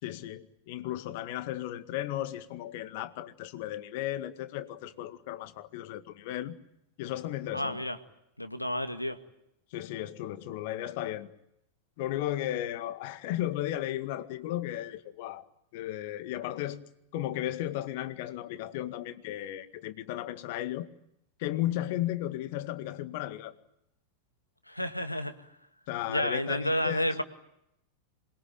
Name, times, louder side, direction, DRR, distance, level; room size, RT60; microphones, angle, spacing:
voice 1, 0.0-6.5 7.0-7.8 9.7-11.3 12.0-15.4 15.7-20.9 21.4-23.5 25.9-27.1, left 13 dB, 50° left, 1.9 m, -35 dB
voice 2, 7.5-8.0 8.4-9.2 24.7-25.4 26.1-27.2, equal, 85° left, 1.9 m, -30 dB
27.5 x 22.0 x 9.1 m
figure-of-eight pair, 90°, 0 cm